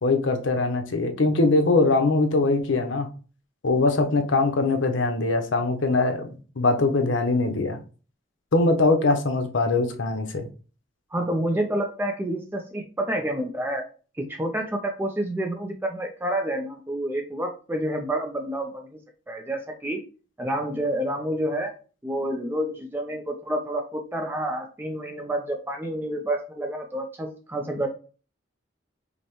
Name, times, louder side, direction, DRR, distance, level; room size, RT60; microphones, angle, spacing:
voice 1, 0.0-3.1 3.6-6.3 6.6-7.8 8.5-10.5, left 3 dB, 80° left, 6 dB, 0.7 m, -22 dB
voice 2, 11.1-13.8 14.1-18.9 19.3-20.0 20.4-21.7 22.0-27.9, right 1 dB, 10° right, 3 dB, 0.4 m, -28 dB
5.2 x 2.1 x 3.0 m, 0.37 s
head